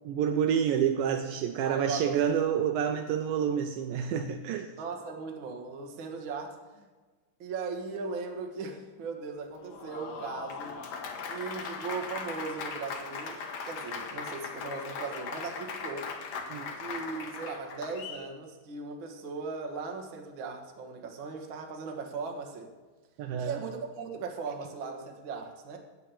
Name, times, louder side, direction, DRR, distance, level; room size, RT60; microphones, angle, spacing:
voice 1, 0.1-4.7 16.5-16.7 23.2-23.6, right 8 dB, 80° right, 7 dB, 2.1 m, -28 dB
voice 2, 1.6-2.2 4.8-6.8 7.4-10.7 11.3-13.4 13.7-16.1 16.8-22.7 23.4-25.8, right 4 dB, 60° right, 2 dB, 1.2 m, -38 dB
Applause, 9.5-18.3, left 5 dB, 60° left, 1.8 m, -39 dB
9.3 x 9.0 x 6.9 m, 1.3 s
omnidirectional pair, 4.5 m